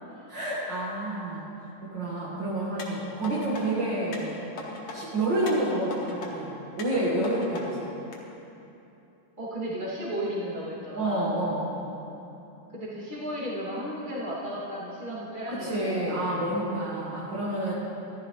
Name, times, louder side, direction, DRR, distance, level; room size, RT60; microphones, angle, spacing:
voice 1, 0.3-1.5 1.8-4.6 4.9-7.9 10.9-11.8 15.5-17.7, right 1 dB, 60° right, -7 dB, 2.4 m, -29 dB
sound 1, 2.8-3.6 4.1-5.0 5.5-6.3 6.8-7.6 8.1-8.2, left 3 dB, 85° left, 2.2 m, -40 dB
voice 2, 9.4-11.3 12.7-16.2, equal, 20° right, -8 dB, 2.6 m, -34 dB
14.5 x 12.5 x 3.2 m, 2.9 s
omnidirectional pair, 2.3 m